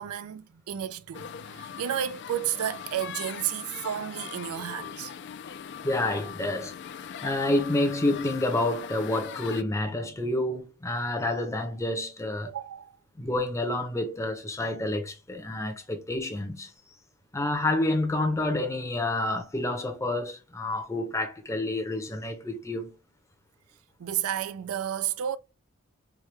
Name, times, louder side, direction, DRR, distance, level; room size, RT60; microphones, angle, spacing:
voice 1, 0.0-5.1 12.5-13.0 24.0-25.4, right 10 dB, 85° right, 0.4 m, -32 dB
sound 1, 1.1-9.6, left 8 dB, 55° left, 0.3 m, -41 dB
voice 2, 5.8-6.8 7.2-12.5 13.2-16.7 17.3-22.9, left 1 dB, 15° left, 0.6 m, -28 dB
4.5 x 2.2 x 3.2 m
head